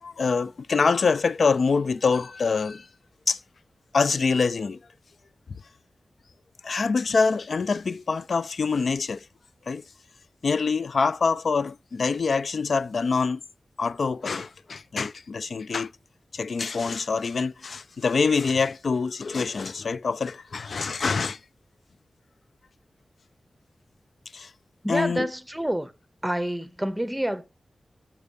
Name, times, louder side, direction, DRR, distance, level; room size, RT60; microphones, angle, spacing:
voice 1, 0.0-2.9 3.3-3.4 3.9-4.8 6.6-9.3 9.7-9.8 10.4-13.4 13.8-15.9 16.3-21.4 24.3-24.5 24.9-25.3, left 4 dB, 70° left, 0.3 m, -25 dB
voice 2, 24.8-25.9 26.2-27.4, right 1 dB, 5° right, 0.8 m, -28 dB
7.2 x 6.7 x 5.1 m
wide cardioid pair, 120°, 0 cm